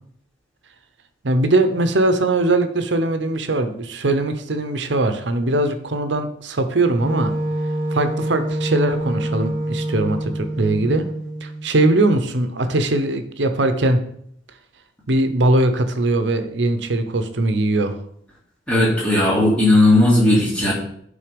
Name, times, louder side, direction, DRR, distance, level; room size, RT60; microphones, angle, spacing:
voice 1, 1.2-7.3 7.9-11.1 11.4-14.0 15.1-17.9, right 2 dB, 75° right, 9 dB, 0.8 m, -20 dB
Wind instrument woodwind instrument, 7.0-11.7, right 1 dB, 35° right, 1.5 m, -26 dB
voice 2, 18.7-20.7, left 1 dB, 5° left, -6 dB, 2.8 m, -16 dB
8.9 x 4.0 x 5.2 m, 0.69 s
head